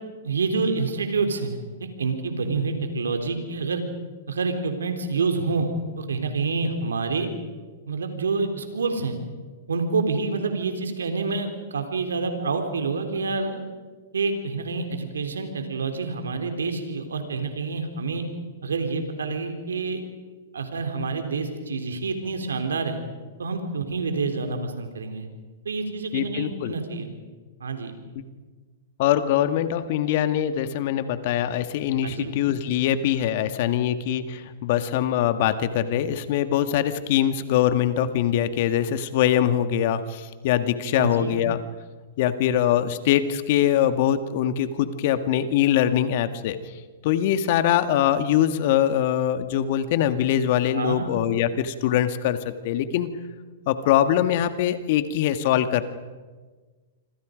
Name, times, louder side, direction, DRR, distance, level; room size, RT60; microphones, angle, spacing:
voice 1, 0.2-3.8 4.3-5.7 6.0-7.3 7.9-9.2 9.7-13.6 14.1-18.2 18.6-20.0 20.5-23.0 23.4-25.3 25.7-27.2 27.6-27.9 32.0-32.3 40.9-41.3 50.7-51.1, right 4 dB, 85° right, 6 dB, 3.6 m, -27 dB
voice 2, 26.1-26.7 29.0-41.6 42.2-46.6 47.0-53.1 53.7-55.8, left 10 dB, 55° left, 10 dB, 1.8 m, -23 dB
27.0 x 26.0 x 5.2 m, 1.4 s
hypercardioid pair, 120°, 0 cm